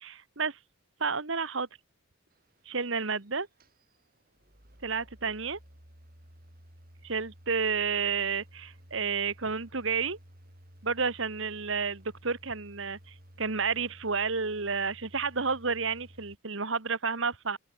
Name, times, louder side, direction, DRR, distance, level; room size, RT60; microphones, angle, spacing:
voice 1, 0.0-0.6 1.0-1.7 2.6-3.5 4.8-5.6 7.0-10.2 10.8-17.6, right 5 dB, 60° right, 1.5 m, -31 dB
sound 1, 2.3-16.3, equal, 45° right, 7.7 m, -55 dB
open air
head